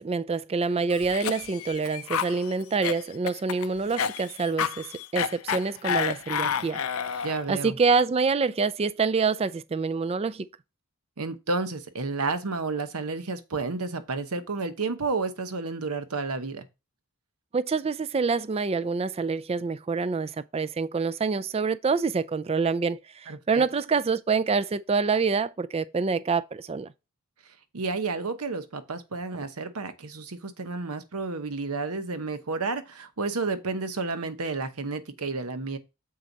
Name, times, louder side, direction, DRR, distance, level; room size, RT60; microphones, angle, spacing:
voice 1, 0.0-6.8 7.1-10.5 17.5-26.9, right 4 dB, 25° right, 0.3 m, -26 dB
Cough, 0.9-7.5, left 7 dB, 70° left, 0.5 m, -30 dB
voice 2, 7.2-7.8 11.2-16.7 23.3-23.6 27.7-35.8, right 3 dB, 85° right, 1.0 m, -31 dB
7.6 x 4.7 x 3.9 m
head